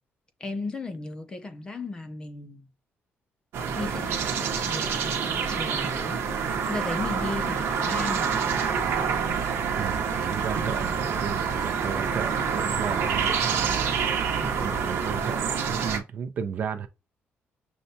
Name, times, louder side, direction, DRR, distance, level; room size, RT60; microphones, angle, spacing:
voice 1, 0.4-2.6 3.8-8.4 14.3-14.6, left 3 dB, 20° left, 0.5 m, -36 dB
sound 1, 3.5-16.0, right 6 dB, 70° right, 0.9 m, -27 dB
voice 2, 9.8-13.6 14.3-16.9, right 7 dB, 40° right, 0.5 m, -34 dB
6.5 x 2.2 x 2.7 m
cardioid pair, 180°, 4 cm